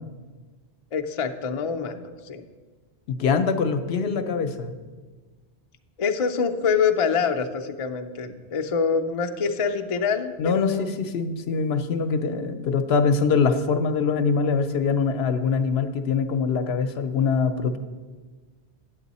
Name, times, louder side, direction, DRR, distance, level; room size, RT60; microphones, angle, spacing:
voice 1, 0.9-2.4 6.0-10.9, left 6 dB, 45° left, 4 dB, 0.4 m, -25 dB
voice 2, 3.1-4.7 10.4-17.8, left 5 dB, 70° left, 9 dB, 0.8 m, -23 dB
9.2 x 7.4 x 4.1 m, 1.4 s
omnidirectional pair, 1.1 m